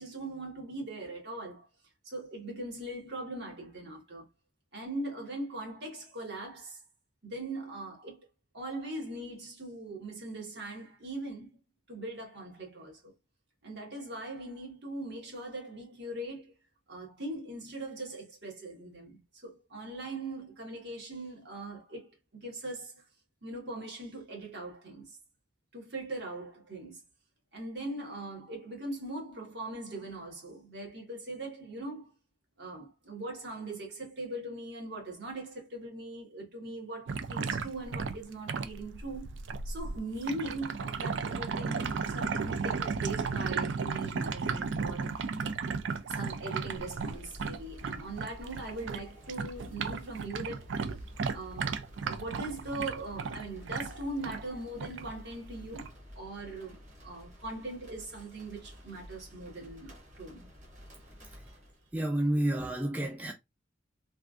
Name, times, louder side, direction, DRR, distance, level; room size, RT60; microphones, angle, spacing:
voice 1, 0.0-1.7 2.0-4.2 4.7-6.8 7.2-8.2 8.5-11.6 11.9-13.1 13.6-16.5 16.9-23.0 23.4-25.2 25.7-27.0 27.5-32.1 32.6-39.3 39.6-45.2 46.0-50.7 51.3-60.5, right 2 dB, 65° right, 1.5 m, -40 dB
sound 1, 37.1-49.0 49.3-54.4 54.8-55.1 55.7-55.9, right 5 dB, 85° right, 0.4 m, -34 dB
sound 2, 46.7-62.1, equal, 40° right, 1.3 m, -51 dB
voice 2, 61.9-63.3, right 1 dB, 10° right, 0.3 m, -30 dB
3.4 x 2.6 x 2.4 m
head